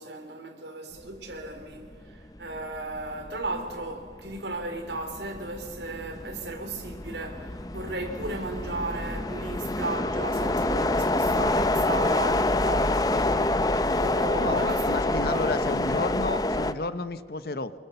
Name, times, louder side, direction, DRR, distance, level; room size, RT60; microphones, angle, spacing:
voice 1, 0.0-15.8, right 2 dB, 75° right, 3.2 m, -36 dB
sound 1, 1.7-2.0 2.4-16.7, left 2 dB, 20° left, 0.6 m, -27 dB
voice 2, 14.3-17.7, left 2 dB, 60° left, 0.9 m, -31 dB
25.0 x 22.5 x 6.9 m
head